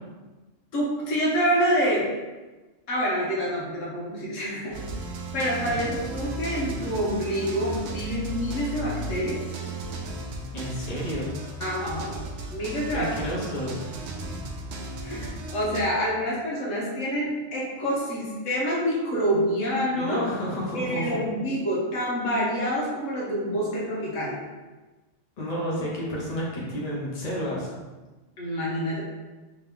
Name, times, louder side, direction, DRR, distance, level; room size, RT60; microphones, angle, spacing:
voice 1, 0.7-2.1 2.9-4.8 5.3-9.4 11.6-12.2 12.5-13.1 15.0-20.3 20.7-24.4 28.4-29.0, equal, 85° left, -5 dB, 1.3 m, -27 dB
sound 1, 4.7-15.8, right 1 dB, 65° right, 0.8 m, -35 dB
voice 2, 10.5-11.3 12.9-13.7 20.0-21.2 25.4-27.7, equal, 35° left, -5 dB, 1.0 m, -30 dB
3.3 x 2.9 x 3.5 m, 1.2 s
omnidirectional pair, 1.3 m